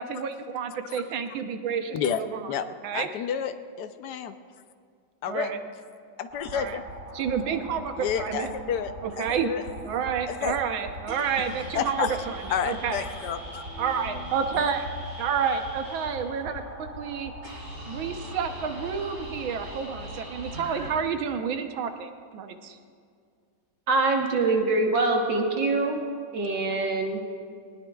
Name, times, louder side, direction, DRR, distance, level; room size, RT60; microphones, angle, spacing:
voice 1, 0.0-2.5 2.8-3.1 5.3-5.6 6.5-6.8 7.1-8.5 9.0-9.5 9.8-13.0 13.8-14.8 15.2-17.3 17.9-22.8, right 7 dB, 90° right, 7 dB, 1.6 m, -30 dB
voice 2, 2.9-3.5 3.8-4.3 5.2-5.5 6.2-6.8 8.0-8.9 9.2-9.6 10.3-10.6 11.7-12.2 12.5-13.6, left 8 dB, 70° left, 10 dB, 1.1 m, -30 dB
sound 1, 6.3-20.9, equal, 40° right, 3.6 m, -40 dB
voice 3, 23.9-26.0 26.3-27.2, right 3 dB, 70° right, 1 dB, 1.9 m, -24 dB
21.0 x 19.0 x 2.3 m, 2.2 s
omnidirectional pair, 2.1 m